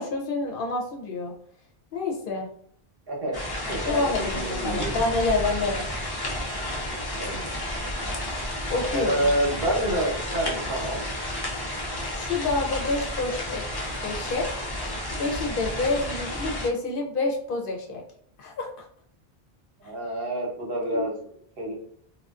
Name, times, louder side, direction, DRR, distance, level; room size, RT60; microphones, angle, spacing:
voice 1, 0.0-1.3 1.9-2.5 3.9-5.9 8.7-9.3 12.1-13.6 14.0-14.6 15.2-18.0 18.4-18.9 19.8-19.9 20.9-21.1, left 3 dB, 65° left, 0 dB, 0.7 m, -28 dB
sound 1, 3.3-16.7, left 1 dB, 40° left, 0.3 m, -31 dB
voice 2, 3.6-4.9 5.6-5.7 7.2-7.4 8.9-11.0 19.8-21.1 21.6-21.7, right 1 dB, 65° right, -2 dB, 1.0 m, -28 dB
2.4 x 2.2 x 2.3 m, 0.62 s
omnidirectional pair, 1.0 m